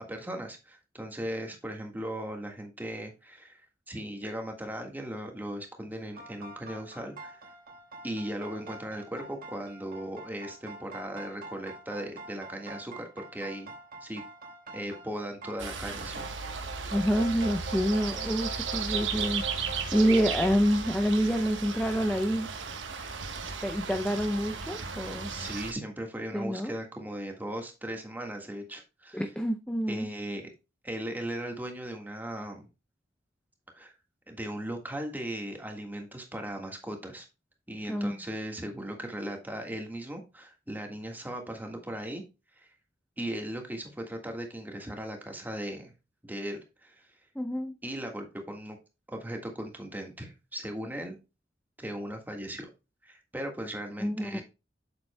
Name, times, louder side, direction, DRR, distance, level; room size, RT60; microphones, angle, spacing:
voice 1, 0.1-3.6 3.9-7.4 8.0-13.7 14.0-14.2 14.7-16.3 25.3-29.2 29.9-30.4 30.8-32.7 33.7-33.9 34.3-37.2 37.7-42.2 42.6-42.7 43.2-45.9 46.2-47.0 47.8-48.8 49.1-51.2 51.8-52.7 53.0-54.4, right 1 dB, 10° right, 1.6 m, -38 dB
sound 1, 6.1-20.5, right 2 dB, 50° right, 1.5 m, -44 dB
sound 2, 15.6-25.7, right 5 dB, 85° right, 1.2 m, -35 dB
voice 2, 16.9-22.5 23.6-25.3 26.3-26.7 29.1-30.1 37.9-38.2 47.4-47.7 54.0-54.4, equal, 5° left, 0.5 m, -27 dB
7.7 x 7.0 x 2.2 m
head